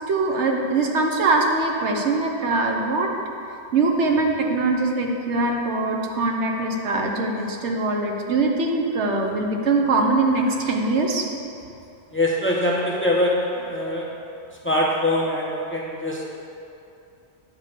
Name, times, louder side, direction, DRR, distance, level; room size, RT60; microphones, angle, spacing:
voice 1, 0.1-3.1 3.7-11.2, right 3 dB, 85° right, 1 dB, 1.2 m, -22 dB
voice 2, 12.1-14.1 14.6-16.2, left 1 dB, 10° left, -4 dB, 0.9 m, -23 dB
9.7 x 3.6 x 6.6 m, 2.7 s
omnidirectional pair, 1.1 m